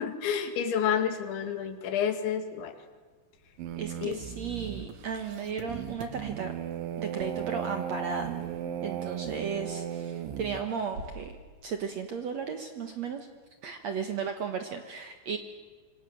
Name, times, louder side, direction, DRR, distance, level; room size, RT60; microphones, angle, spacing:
voice 1, 0.0-2.7 4.0-4.2, left 8 dB, 85° left, 8 dB, 4.4 m, -29 dB
sound 1, 3.3-11.4, right 2 dB, 55° right, 7.2 m, -52 dB
sound 2, 3.6-10.6, right 9 dB, 90° right, 3.9 m, -36 dB
voice 2, 3.8-6.5 7.0-8.3 8.8-11.3 11.6-13.3 13.6-15.4, right 6 dB, 70° right, 7 dB, 1.6 m, -35 dB
26.5 x 25.0 x 7.8 m, 1.5 s
omnidirectional pair, 5.2 m